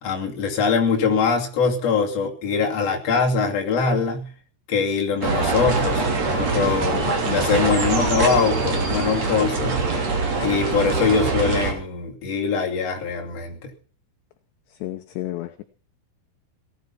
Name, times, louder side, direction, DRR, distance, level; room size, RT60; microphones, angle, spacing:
voice 1, 0.0-4.3 4.7-7.0 7.3-9.8 10.1-13.7, left 5 dB, 40° left, 0 dB, 3.1 m, -23 dB
sound 1, 5.2-11.7, right 3 dB, 35° right, 3.6 m, -23 dB
voice 2, 6.8-7.2 14.7-15.6, left 15 dB, 75° left, 9 dB, 2.7 m, -32 dB
18.5 x 11.5 x 5.8 m, 0.41 s
omnidirectional pair, 6.0 m